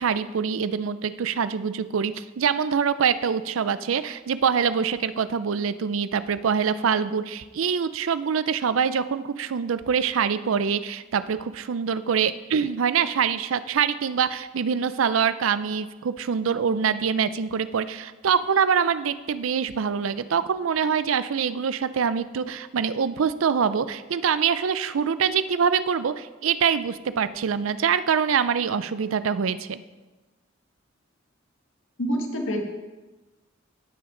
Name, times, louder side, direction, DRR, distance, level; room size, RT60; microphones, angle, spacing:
voice 1, 0.0-29.8, right 7 dB, 85° right, 14 dB, 0.5 m, -24 dB
voice 2, 32.0-32.6, equal, 75° left, 2 dB, 1.6 m, -26 dB
16.5 x 5.9 x 3.8 m, 1.2 s
head